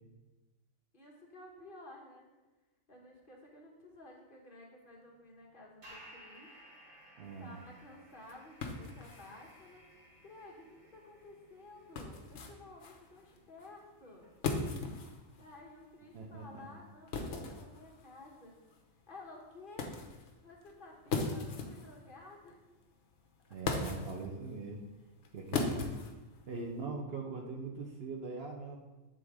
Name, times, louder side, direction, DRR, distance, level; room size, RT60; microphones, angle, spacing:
voice 1, 0.9-2.3 2.9-6.6 7.4-9.8 10.2-14.3 15.4-18.6 19.1-19.9 20.4-22.6, left 2 dB, 40° left, -2 dB, 1.3 m, -53 dB
sound 1, 4.8-17.8, right 1 dB, 35° right, 1.3 m, -60 dB
voice 2, 7.2-7.6 16.1-16.7 23.5-24.8 25.3-26.0 26.5-28.8, right 3 dB, 55° right, 1 dB, 0.9 m, -41 dB
sound 2, 7.3-26.9, left 3 dB, 60° left, 1.1 m, -41 dB
7.8 x 3.8 x 4.8 m, 1.1 s
omnidirectional pair, 1.4 m